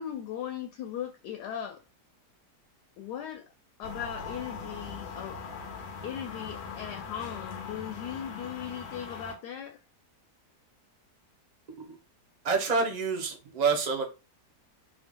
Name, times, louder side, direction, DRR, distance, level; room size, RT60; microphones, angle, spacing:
voice 1, 0.0-1.8 3.0-3.5 3.8-5.4 6.0-9.8, left 9 dB, 80° left, 1.1 m, -38 dB
sound 1, 3.8-9.3, left 5 dB, 60° left, 0.7 m, -41 dB
voice 2, 12.4-14.0, right 5 dB, 40° right, 0.6 m, -27 dB
3.6 x 2.4 x 3.6 m
omnidirectional pair, 1.8 m